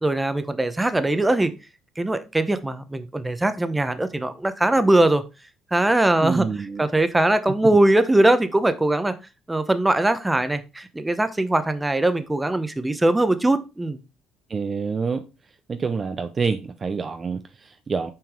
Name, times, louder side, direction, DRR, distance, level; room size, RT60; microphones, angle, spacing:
voice 1, 0.0-1.5 2.0-5.2 5.7-6.5 6.8-9.2 9.5-14.0, right 1 dB, 15° right, 0.8 m, -21 dB
voice 2, 6.2-6.9 14.5-18.1, right 5 dB, 35° right, 0.5 m, -27 dB
6.0 x 4.7 x 3.5 m
supercardioid pair, 65°, 0 cm